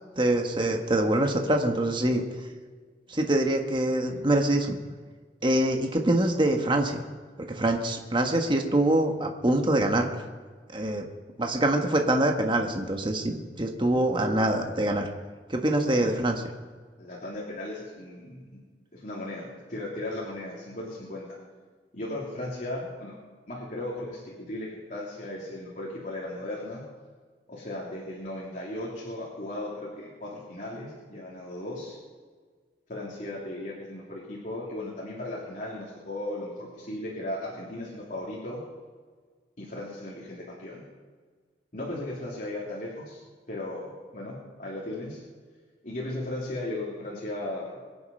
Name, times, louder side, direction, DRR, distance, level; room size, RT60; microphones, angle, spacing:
voice 1, 0.2-2.2 3.1-4.8 5.4-7.0 7.4-10.1 10.7-11.0 11.4-15.1 15.5-16.4, right 1 dB, 30° right, 3 dB, 1.4 m, -24 dB
voice 2, 17.0-18.4 18.9-21.4 21.9-23.1 23.5-26.8 27.5-32.0 32.9-38.6 39.6-40.8 41.7-43.2 43.5-45.2 45.8-47.7, left 1 dB, 45° left, -6 dB, 3.0 m, -36 dB
23.5 x 8.4 x 5.4 m, 1.5 s
head